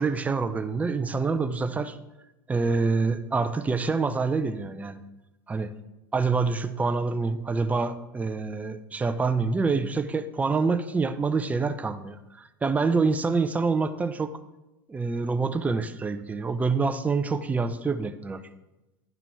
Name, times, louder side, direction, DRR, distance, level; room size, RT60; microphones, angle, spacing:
voice 1, 0.0-2.0 2.5-5.0 5.5-5.7 6.1-14.3 14.9-18.4, right 4 dB, 15° right, 9 dB, 0.5 m, -26 dB
10.0 x 3.9 x 4.5 m, 0.97 s
hypercardioid pair, 100°, 11 cm